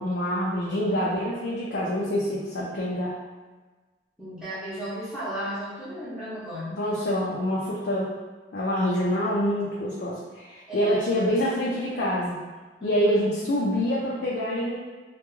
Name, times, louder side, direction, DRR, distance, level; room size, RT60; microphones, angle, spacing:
voice 1, 0.0-3.2 6.7-8.1 8.5-12.4 12.8-14.8, equal, 65° left, -6 dB, 0.5 m, -26 dB
voice 2, 4.2-6.8 10.7-11.7 12.8-13.3, equal, 5° right, -12 dB, 0.7 m, -35 dB
2.3 x 2.2 x 3.0 m, 1.3 s
head